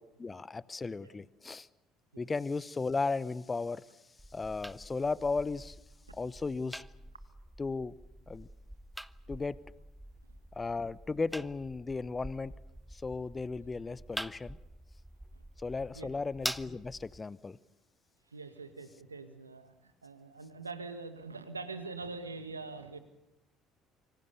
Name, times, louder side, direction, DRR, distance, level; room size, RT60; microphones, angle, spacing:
voice 1, 0.0-1.7 2.2-4.0 4.3-5.8 6.1-6.8 7.6-7.9 8.3-8.5 9.3-9.6 10.6-12.5 12.9-14.6 15.6-17.6, left 4 dB, 25° left, 20 dB, 0.9 m, -35 dB
sound 1, 4.2-17.2, right 1 dB, 5° right, 1.0 m, -46 dB
voice 2, 18.3-23.0, right 3 dB, 90° right, 10 dB, 1.9 m, -44 dB
27.0 x 25.0 x 6.9 m, 0.88 s
figure-of-eight pair, 55°, 0 cm